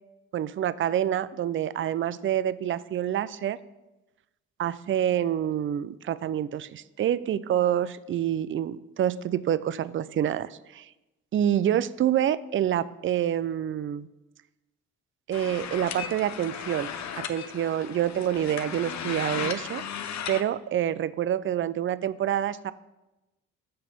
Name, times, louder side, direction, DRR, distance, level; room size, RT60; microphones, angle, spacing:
voice 1, 0.3-3.6 4.6-10.9 11.3-14.1 15.3-16.9 17.2-19.8 20.3-22.7, right 10 dB, 35° right, 17 dB, 0.4 m, -27 dB
sound 1, 15.3-20.4, left 8 dB, 55° left, 0.8 m, -35 dB
6.4 x 5.9 x 5.9 m, 1.0 s
hypercardioid pair, 45°, 34 cm